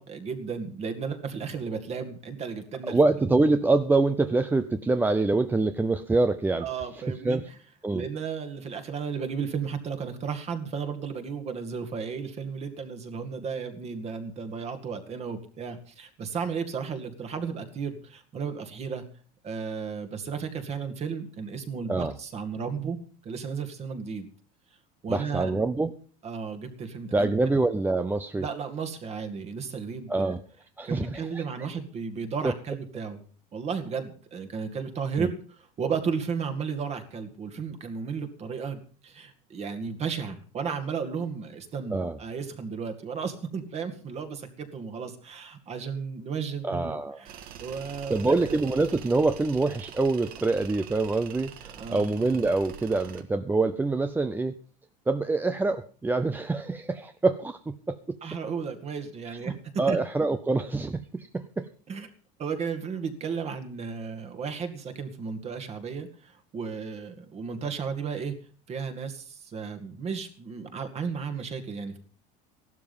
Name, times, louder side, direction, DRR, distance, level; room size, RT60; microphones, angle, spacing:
voice 1, 0.0-3.0 6.6-7.6 7.9-19.0 19.4-23.0 23.2-24.3 25.0-25.5 26.2-27.3 28.4-30.4 30.8-33.2 33.5-48.6 51.8-52.0 58.2-59.5 59.9-60.0 61.9-62.1 62.4-68.3 68.7-72.0, right 6 dB, 35° right, 8 dB, 2.2 m, -34 dB
voice 2, 2.8-6.7 7.2-7.5 7.8-8.1 21.9-22.1 25.1-25.9 27.1-28.5 30.1-30.4 30.8-31.4 32.4-32.5 35.2-35.3 41.9-42.2 46.6-47.2 48.1-54.5 55.1-58.2 59.5-61.7, right 3 dB, 10° right, 10 dB, 0.6 m, -25 dB
Tools, 47.3-53.2, right 9 dB, 50° right, 1.7 m, -45 dB
15.0 x 12.0 x 5.5 m, 0.41 s
cardioid pair, 140°, 20 cm